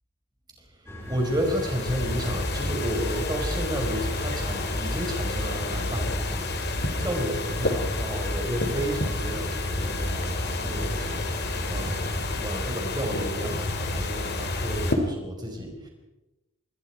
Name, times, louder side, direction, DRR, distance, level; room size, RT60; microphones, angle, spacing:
voice 1, 0.6-15.9, equal, 20° right, 1 dB, 5.1 m, -32 dB
sound 1, 0.9-12.5, equal, 10° left, 5.2 m, -39 dB
sound 2, 1.1-14.9, left 2 dB, 50° left, 2.8 m, -29 dB
27.5 x 21.5 x 4.8 m, 0.99 s
head